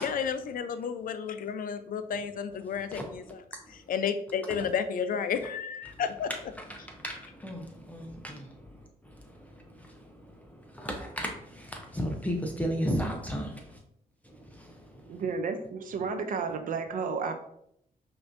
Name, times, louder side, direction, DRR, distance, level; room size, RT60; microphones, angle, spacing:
voice 1, 0.0-3.4 3.9-6.3, left 7 dB, 65° left, 0.4 m, -32 dB
voice 2, 10.8-11.3 12.0-13.5, equal, 10° left, 0.7 m, -30 dB
voice 3, 15.1-17.4, right 5 dB, 60° right, 0.5 m, -32 dB
5.5 x 2.6 x 2.6 m
cardioid pair, 90°, 16 cm